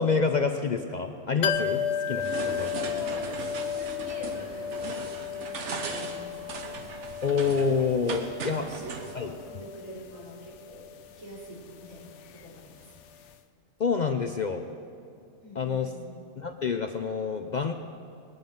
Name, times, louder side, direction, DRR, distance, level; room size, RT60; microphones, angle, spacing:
voice 1, 0.0-2.2 2.6-2.7 7.2-8.6 9.2-9.3 13.8-14.7 15.6-15.9 16.4-17.7, left 5 dB, 50° left, 6 dB, 0.5 m, -27 dB
sound 1, 1.4-13.0 13.3-13.4, left 8 dB, 70° left, 0.9 m, -35 dB
sound 2, 2.1-9.1, right 4 dB, 65° right, 1.3 m, -38 dB
voice 2, 2.3-6.9 8.2-10.9 11.2-13.3 15.4-16.1, right 1 dB, 85° right, -5 dB, 3.8 m, -45 dB
20.0 x 9.6 x 5.3 m, 2.5 s
omnidirectional pair, 1.3 m